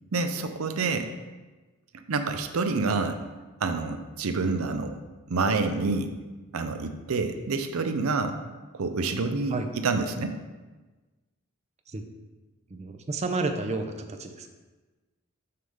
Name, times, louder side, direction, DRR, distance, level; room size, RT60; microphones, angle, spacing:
voice 1, 0.1-1.1 2.1-3.2 3.6-4.9 5.3-6.1 6.5-8.4 8.7-9.6 9.8-10.4, right 3 dB, 85° right, 7 dB, 0.6 m, -27 dB
voice 2, 12.7-14.5, right 3 dB, 30° right, 6 dB, 0.5 m, -31 dB
6.6 x 3.5 x 5.5 m, 1.2 s
head